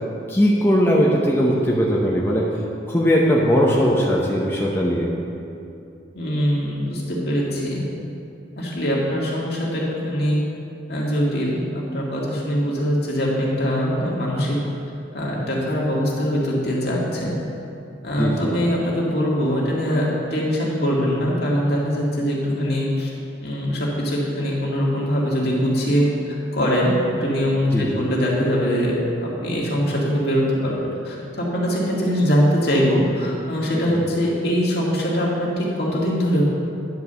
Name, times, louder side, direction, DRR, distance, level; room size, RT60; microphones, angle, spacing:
voice 1, 0.3-2.5 2.9-5.1 18.2-18.5 27.7-27.9 33.9-34.0, equal, 10° left, -4 dB, 0.8 m, -19 dB
voice 2, 6.1-7.8 8.6-10.4 10.9-14.6 15.1-17.4 18.0-23.1 23.4-26.9 27.2-28.9 29.2-30.7 31.0-36.5, equal, 55° left, -4 dB, 1.9 m, -22 dB
10.5 x 4.7 x 6.8 m, 2.6 s
head